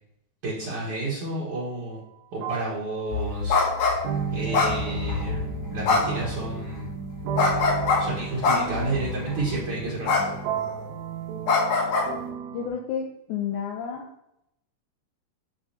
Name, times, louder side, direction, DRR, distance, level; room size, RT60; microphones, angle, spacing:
voice 1, 0.4-2.0 2.3-3.6 4.3-6.9 8.0-10.4, right 2 dB, 50° right, -6 dB, 2.0 m, -31 dB
sound 1, 1.5-1.8 2.4-12.7, right 6 dB, 90° right, 2.9 m, -33 dB
sound 2, 3.1-10.6, left 4 dB, 45° left, 3.0 m, -36 dB
sound 3, 3.5-3.9 4.5-5.2 5.8-6.2 7.4-8.0 8.4-8.9 10.1-10.3 10.6-10.8 11.5-12.1, left 4 dB, 65° left, 2.9 m, -22 dB
voice 2, 12.5-14.1, left 7 dB, 80° left, 2 dB, 1.7 m, -31 dB
8.4 x 6.1 x 2.9 m, 0.80 s
omnidirectional pair, 4.2 m